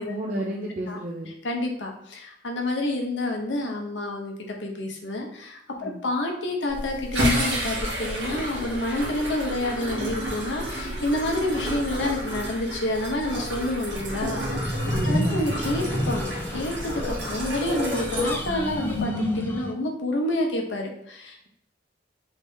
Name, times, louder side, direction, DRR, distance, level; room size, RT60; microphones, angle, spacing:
voice 1, 0.1-1.3 5.8-6.0 14.9-15.4, right 1 dB, 45° right, -1 dB, 0.4 m, -32 dB
voice 2, 1.4-21.5, left 1 dB, 75° left, 1 dB, 0.8 m, -29 dB
sound 1, 6.7-19.0, equal, 70° right, 1.3 m, -30 dB
sound 2, 13.9-19.7, left 1 dB, 10° left, 0.4 m, -30 dB
3.3 x 2.7 x 3.5 m, 0.76 s
head